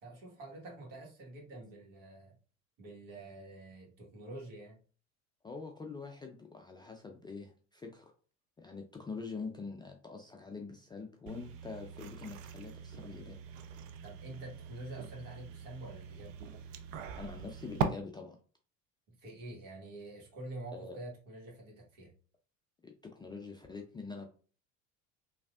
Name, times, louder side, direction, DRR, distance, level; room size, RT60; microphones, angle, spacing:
voice 1, 0.0-2.4 2.8-4.8 14.0-16.3 19.1-22.1, right 2 dB, 60° right, -1 dB, 1.6 m, -47 dB
voice 2, 5.4-8.1 8.6-13.4 17.2-18.4 20.7-21.0 22.8-24.3, left 4 dB, 15° left, 2 dB, 0.3 m, -45 dB
sound 1, 11.3-17.8, right 7 dB, 80° right, 0.5 m, -41 dB
3.1 x 2.7 x 2.4 m, 0.39 s
hypercardioid pair, 70°, 38 cm